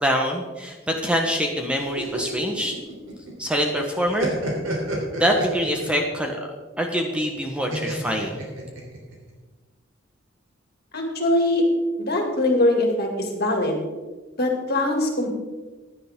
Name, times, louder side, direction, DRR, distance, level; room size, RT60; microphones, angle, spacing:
voice 1, 0.0-2.8 3.4-4.4 5.2-6.4 6.8-8.4, equal, 5° right, 2 dB, 1.2 m, -24 dB
sound 1, 1.8-3.5 3.8-6.0 7.7-9.1, right 1 dB, 80° right, 3.5 m, -30 dB
voice 2, 10.9-11.6 12.0-13.8 14.4-15.3, left 1 dB, 50° left, 2 dB, 2.5 m, -22 dB
15.5 x 10.5 x 3.7 m, 1.3 s
head